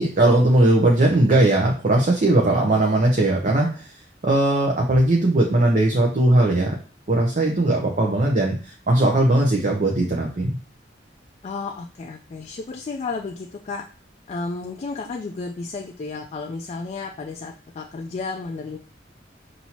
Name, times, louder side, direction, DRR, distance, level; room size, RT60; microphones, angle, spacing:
voice 1, 0.0-6.8 7.1-10.6, right 1 dB, 45° right, -1 dB, 0.6 m, -19 dB
voice 2, 11.4-13.9 14.3-18.8, left 4 dB, 35° left, 3 dB, 0.3 m, -32 dB
5.5 x 2.6 x 2.9 m, 0.37 s
head